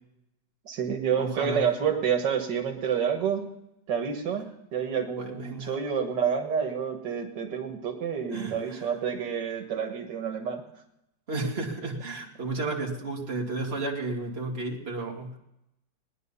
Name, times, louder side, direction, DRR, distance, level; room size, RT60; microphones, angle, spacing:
voice 1, 0.7-3.5 3.9-10.6, right 7 dB, 85° right, 3 dB, 2.2 m, -29 dB
voice 2, 1.2-1.6 5.0-5.7 8.3-8.9 11.3-15.4, right 2 dB, 35° right, -1 dB, 2.4 m, -33 dB
19.5 x 10.5 x 5.6 m, 0.86 s
omnidirectional pair, 1.9 m